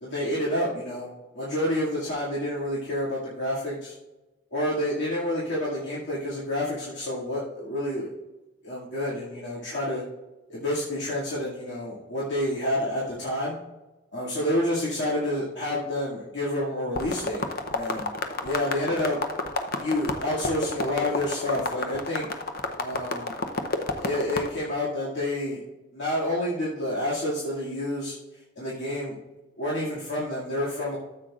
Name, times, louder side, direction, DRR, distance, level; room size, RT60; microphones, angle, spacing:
voice 1, 0.0-3.9 4.5-8.1 8.6-10.0 10.5-13.6 14.1-18.1 18.4-19.2 19.8-22.3 22.8-23.4 24.0-25.6 25.9-29.1 29.6-31.0, left 1 dB, 70° left, -8 dB, 2.3 m, -29 dB
sound 1, 16.9-24.5, left 3 dB, 55° left, 0.8 m, -30 dB
14.0 x 7.9 x 2.5 m, 1.1 s
head